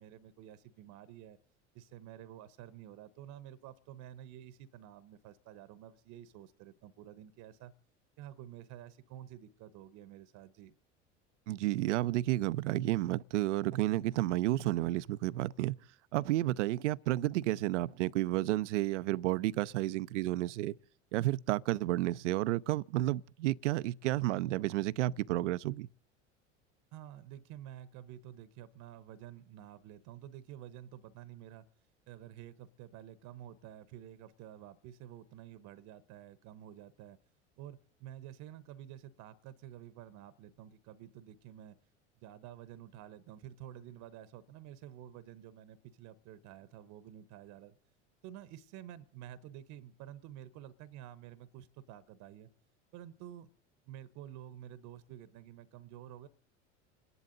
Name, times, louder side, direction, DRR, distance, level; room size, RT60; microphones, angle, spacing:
voice 1, 0.0-1.4 1.7-7.7 8.2-10.7 26.9-31.7 32.1-37.2 37.6-41.7 42.2-47.8 48.2-52.5 52.9-53.5 53.8-56.3, right 11 dB, 55° right, 1.0 m, -50 dB
voice 2, 11.5-15.8 16.1-20.8 21.1-25.9, right 16 dB, 75° right, 0.6 m, -31 dB
29.0 x 11.0 x 3.9 m
hypercardioid pair, 80°, 36 cm